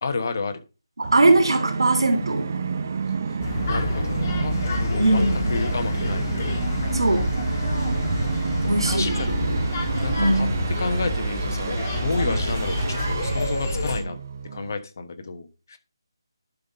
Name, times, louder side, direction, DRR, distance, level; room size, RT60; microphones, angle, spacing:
voice 1, 0.0-0.6 3.6-6.3 8.6-9.6 10.0-10.5 10.8-14.2 14.5-15.8, left 3 dB, 40° left, 1.2 m, -31 dB
Musical instrument, 1.0-14.7, right 5 dB, 30° right, 0.6 m, -30 dB
voice 2, 1.0-2.5 5.0-5.4 6.9-7.3 8.7-9.2 9.5-9.6 10.2-10.5, right 2 dB, 85° right, 2.8 m, -20 dB
sound 1, 3.4-14.0, left 1 dB, 25° left, 1.6 m, -27 dB
11.5 x 4.1 x 5.3 m
hypercardioid pair, 175°, 2 cm